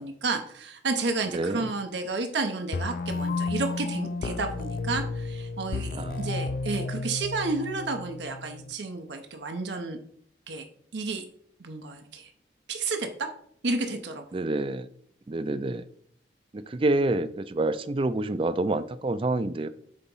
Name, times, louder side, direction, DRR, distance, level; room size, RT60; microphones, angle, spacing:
voice 1, 0.0-10.0 10.5-10.7 10.9-11.2 11.6-12.3 12.7-13.3 13.6-14.2, right 3 dB, 85° right, 5 dB, 0.8 m, -31 dB
voice 2, 1.3-1.7 5.9-6.3 14.3-14.9 15.3-15.8 16.5-19.7, right 2 dB, 30° right, 13 dB, 0.4 m, -27 dB
sound 1, 2.7-8.7, left 3 dB, 50° left, 0.4 m, -32 dB
8.0 x 2.9 x 5.4 m, 0.63 s
head